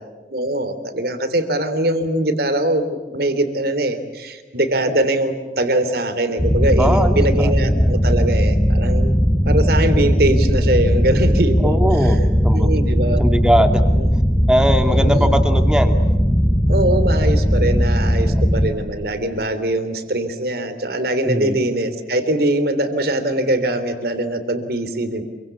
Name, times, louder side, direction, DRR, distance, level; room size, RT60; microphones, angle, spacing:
voice 1, 0.3-9.1 9.4-12.2 12.5-13.2 13.9-14.0 14.9-15.4 16.7-25.2, right 1 dB, 55° right, 10 dB, 3.3 m, -22 dB
sound 1, 6.4-18.7, equal, 20° left, 4.4 m, -17 dB
voice 2, 6.8-7.5 11.6-12.7 13.2-13.8 14.5-16.0 18.2-18.5 21.2-21.6, equal, 5° right, 6 dB, 2.3 m, -20 dB
28.0 x 24.5 x 8.4 m, 1.3 s
head